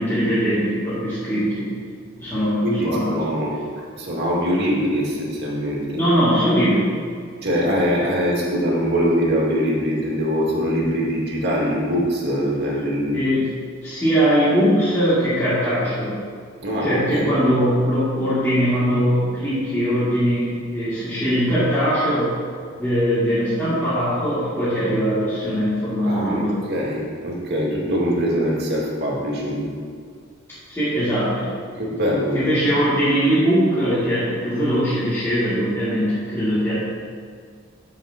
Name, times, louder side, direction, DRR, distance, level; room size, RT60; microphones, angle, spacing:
voice 1, 0.0-1.7 2.2-3.1 5.9-7.0 13.1-13.5 13.8-16.2 16.8-22.3 22.8-26.6 30.7-31.5 32.3-36.7, equal, 10° left, -14 dB, 2.5 m, -21 dB
voice 2, 2.6-5.9 7.4-13.2 16.6-17.4 26.0-29.7 31.8-32.4, equal, 55° right, -4 dB, 2.1 m, -23 dB
15.5 x 5.7 x 2.9 m, 2.1 s
head